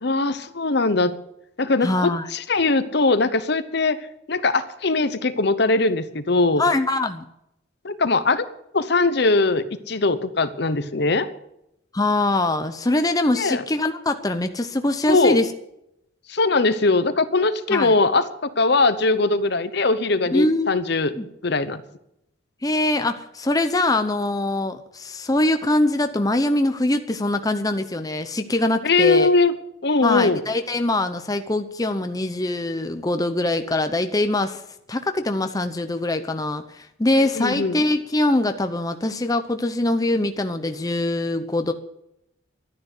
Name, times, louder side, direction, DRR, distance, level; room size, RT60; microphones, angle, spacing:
voice 1, 0.0-1.1 1.6-4.0 4.3-6.6 7.8-8.5 8.7-11.3 13.4-13.6 15.1-15.4 16.3-21.1 21.4-21.8 28.8-29.5 29.8-30.4 37.4-37.8, left 3 dB, 55° left, 12 dB, 0.9 m, -20 dB
voice 2, 1.8-2.3 6.6-7.2 11.9-15.5 17.7-17.9 20.3-20.8 21.2-21.3 22.6-29.3 30.0-34.6 34.9-41.7, left 2 dB, 20° left, 7 dB, 0.7 m, -23 dB
12.5 x 10.5 x 8.2 m, 0.80 s
head